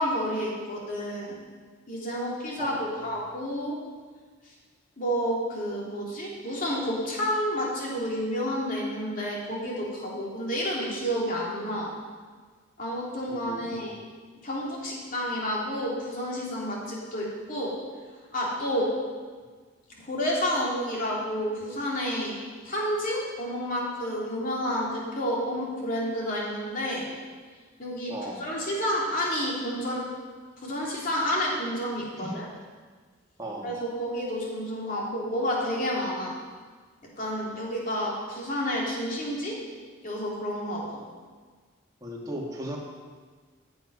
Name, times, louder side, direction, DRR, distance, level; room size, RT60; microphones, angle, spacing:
voice 1, 0.0-1.4 1.9-3.8 4.5-4.6 5.0-11.9 12.8-14.0 14.4-17.8 18.3-18.9 20.0-22.3 22.6-27.1 27.8-30.0 30.6-32.4 33.6-36.3 37.2-39.5 40.0-41.0, equal, 45° left, -4 dB, 2.9 m, -30 dB
voice 2, 2.6-3.0 13.3-13.9 28.1-28.4 32.2-32.4 33.4-33.7 42.0-42.8, right 1 dB, 20° right, -3 dB, 2.0 m, -37 dB
14.5 x 7.9 x 5.5 m, 1.5 s
head